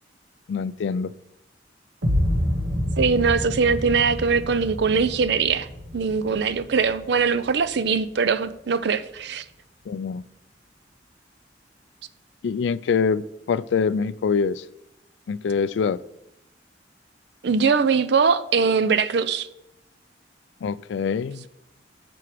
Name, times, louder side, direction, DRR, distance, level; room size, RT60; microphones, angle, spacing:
voice 1, 0.5-1.1 9.9-10.2 12.4-14.6 15.3-16.0 20.6-21.4, left 5 dB, 75° left, 0.3 m, -24 dB
sound 1, 2.0-8.0, equal, 85° right, 1.9 m, -28 dB
voice 2, 3.0-5.7 5.9-9.4 17.4-19.5, right 5 dB, 65° right, 0.5 m, -21 dB
7.6 x 6.1 x 5.0 m
head